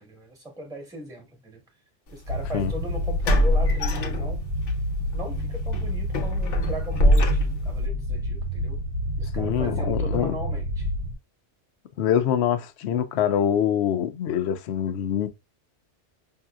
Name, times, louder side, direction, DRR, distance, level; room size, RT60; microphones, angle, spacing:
voice 1, 0.0-1.6 2.1-4.4 5.1-8.8 9.2-10.9, equal, 5° right, 1.2 m, -38 dB
sound 1, 2.1-2.3 3.2-4.7 5.1-5.3 5.7-7.8, left 1 dB, 85° left, 1.2 m, -23 dB
sound 2, 2.3-11.1, left 1 dB, 55° right, 1.1 m, -29 dB
voice 2, 9.3-10.4 12.0-15.3, left 9 dB, 70° left, 0.8 m, -24 dB
5.5 x 2.7 x 2.3 m
omnidirectional pair, 1.2 m